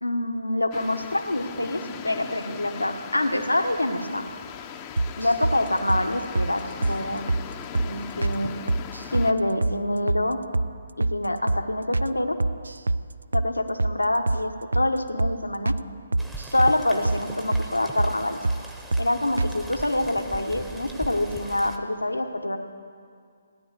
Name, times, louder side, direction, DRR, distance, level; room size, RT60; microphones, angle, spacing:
voice 1, 0.0-4.3 5.2-7.3 7.8-8.6 9.1-10.4 11.0-12.4 13.3-15.8 16.5-18.4 19.0-22.6, left 1 dB, 80° left, 6 dB, 1.2 m, -26 dB
sound 1, 0.7-9.3, left 9 dB, 20° left, 0.7 m, -39 dB
sound 2, 5.0-5.6 5.9-6.1 6.4-6.5 6.8-7.0 7.3-7.4 7.8-7.9 8.2-8.4 8.7-9.3 9.6-9.8 10.1-10.2 10.5-10.7 11.0-11.2 11.5-11.6 11.9-12.1 12.4-13.0 13.3-13.5 13.8-14.0 14.3-14.4 14.7-14.9 15.2-15.4 15.7-15.8 16.1-16.8 17.1-17.2 17.5-17.7 18.0-18.1 18.4-18.6 18.9-19.1 19.4-19.5, right 2 dB, 70° right, 0.4 m, -24 dB
Rain, 16.2-21.8, right 1 dB, 5° right, 0.9 m, -40 dB
16.5 x 10.0 x 8.0 m, 2.2 s
figure-of-eight pair, 135°, 0 cm